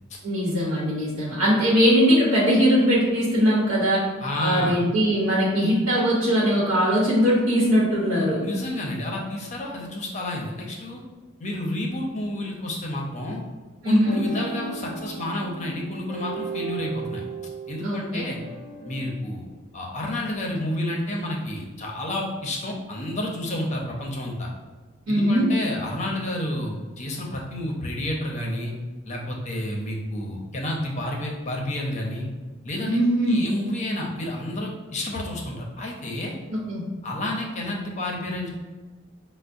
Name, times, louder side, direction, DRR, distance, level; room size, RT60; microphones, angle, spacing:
voice 1, 0.2-4.0 4.4-8.4 13.8-14.2 17.8-18.2 25.1-25.5 32.9-33.5 36.5-36.9, equal, 90° right, -6 dB, 0.9 m, -21 dB
voice 2, 4.2-4.8 8.4-11.0 11.4-13.4 13.8-17.2 17.7-18.4 18.8-19.5 19.7-24.5 25.1-28.7 29.0-32.3 32.6-33.0 33.2-36.3 37.0-38.5, left 1 dB, 35° left, -1 dB, 0.6 m, -30 dB
sound 1, 14.0-19.1, right 4 dB, 40° right, 0.6 m, -35 dB
5.6 x 2.0 x 2.5 m, 1.3 s
head